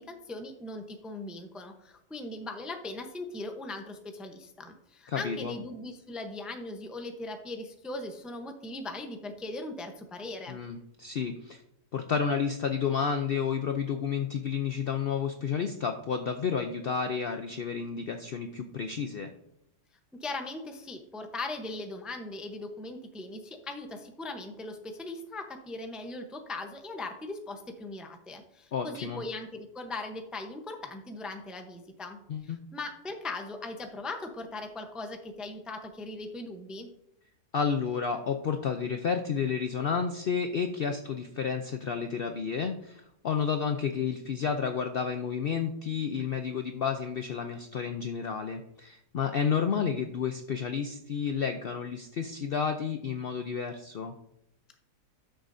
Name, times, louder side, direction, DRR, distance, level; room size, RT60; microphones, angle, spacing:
voice 1, 0.0-10.6 20.2-36.9, left 2 dB, ahead, 5 dB, 0.4 m, -39 dB
voice 2, 5.1-5.5 10.5-11.6 11.9-19.3 28.7-29.2 32.3-32.6 37.5-54.1, left 6 dB, 85° left, 6 dB, 0.5 m, -31 dB
12.5 x 6.5 x 2.6 m, 0.78 s
omnidirectional pair, 1.7 m